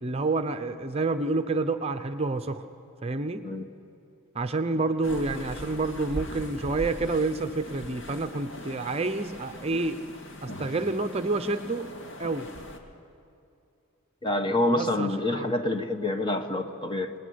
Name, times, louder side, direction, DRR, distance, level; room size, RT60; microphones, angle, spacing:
voice 1, 0.0-2.6 3.0-3.4 4.3-10.0 10.4-11.9 12.2-12.5 14.7-15.5, right 3 dB, 30° right, 8 dB, 0.8 m, -28 dB
sound 1, 5.0-12.8, equal, 65° left, 2.2 m, -40 dB
voice 2, 14.2-17.1, left 1 dB, 20° left, 6 dB, 1.3 m, -27 dB
27.0 x 20.0 x 9.5 m, 2.6 s
head